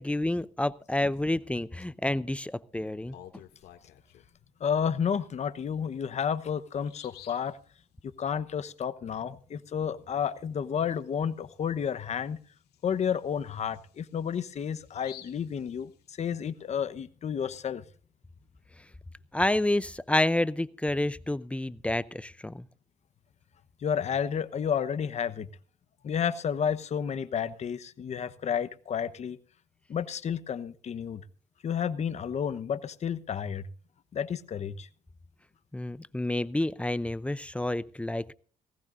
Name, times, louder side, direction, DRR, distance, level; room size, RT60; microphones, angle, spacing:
voice 1, 0.0-3.2 19.3-22.6 35.7-38.3, left 1 dB, 5° left, 0.5 m, -29 dB
Bird vocalization bird call bird song, 2.9-4.4 5.8-5.9 6.4-6.5 6.8-7.5 11.0-11.1 11.5-11.6 12.2-16.4, left 12 dB, 75° left, 2.3 m, -53 dB
voice 2, 4.6-7.6 8.2-12.4 12.8-15.9 16.2-17.8 23.8-25.5 26.0-29.4 29.9-31.2 31.6-33.7 34.1-34.9, left 7 dB, 40° left, 1.0 m, -31 dB
19.0 x 16.0 x 2.6 m
cardioid pair, 110°, 17 cm